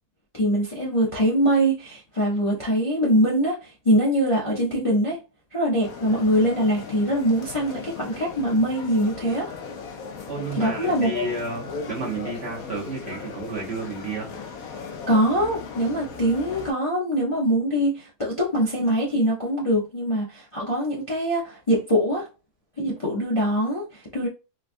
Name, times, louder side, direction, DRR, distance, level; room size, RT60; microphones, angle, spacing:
voice 1, 0.3-5.2 5.5-9.5 10.6-11.1 15.1-22.3 22.8-24.3, equal, 30° left, 0.6 m, -23 dB
sound 1, 5.8-16.7, left 5 dB, 70° left, 1.2 m, -37 dB
voice 2, 10.3-14.6, right 3 dB, 45° right, 1.1 m, -32 dB
4.1 x 2.3 x 2.6 m
omnidirectional pair, 1.6 m